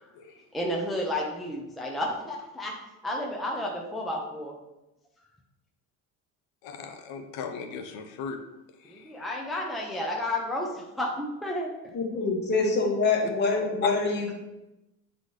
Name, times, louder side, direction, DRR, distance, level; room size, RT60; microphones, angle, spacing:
voice 1, 0.5-2.7 3.0-4.6 8.8-11.9, left 1 dB, ahead, -1 dB, 0.6 m, -32 dB
voice 2, 6.6-8.4 8.8-9.1, left 5 dB, 80° left, 5 dB, 0.7 m, -38 dB
voice 3, 11.9-14.3, left 3 dB, 30° left, -1 dB, 1.3 m, -25 dB
8.2 x 4.0 x 3.2 m, 0.97 s
cardioid pair, 150°, 36 cm